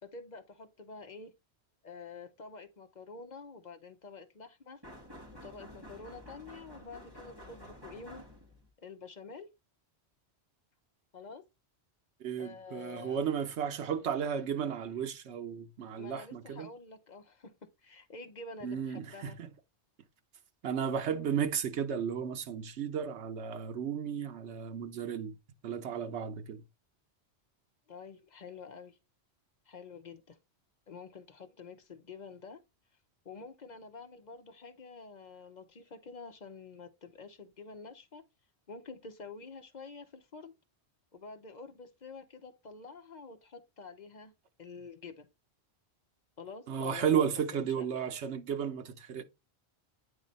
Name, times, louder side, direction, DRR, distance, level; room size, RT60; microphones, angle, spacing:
voice 1, 0.0-1.3 1.8-4.8 5.4-8.3 8.8-9.5 11.1-11.4 12.4-13.3 16.0-19.4 27.9-29.0 29.7-30.4 30.9-32.6 33.2-38.2 38.7-40.5 41.1-44.3 44.6-45.3 46.4-48.0, left 4 dB, 45° left, 0.8 m, -48 dB
sound 1, 4.8-8.7, equal, 20° right, 1.8 m, -51 dB
voice 2, 12.2-16.7 18.6-19.5 20.6-25.3 25.6-26.6 46.7-49.2, right 8 dB, 80° right, 1.1 m, -34 dB
8.8 x 3.2 x 4.0 m
omnidirectional pair, 1.1 m